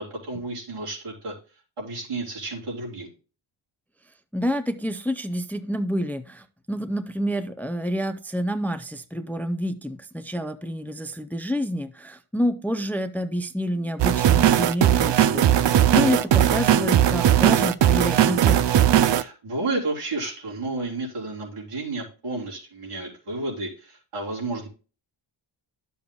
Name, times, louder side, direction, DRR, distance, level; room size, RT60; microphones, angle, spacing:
voice 1, 0.0-1.3 1.8-3.1 15.9-16.3 19.0-24.7, right 2 dB, 85° right, -3 dB, 3.8 m, -32 dB
voice 2, 4.3-18.8, equal, 5° left, 9 dB, 0.5 m, -28 dB
sound 1, 14.0-19.2, right 11 dB, 60° right, 0.5 m, -18 dB
12.0 x 6.9 x 2.3 m, 0.35 s
wide cardioid pair, 160°, 50 cm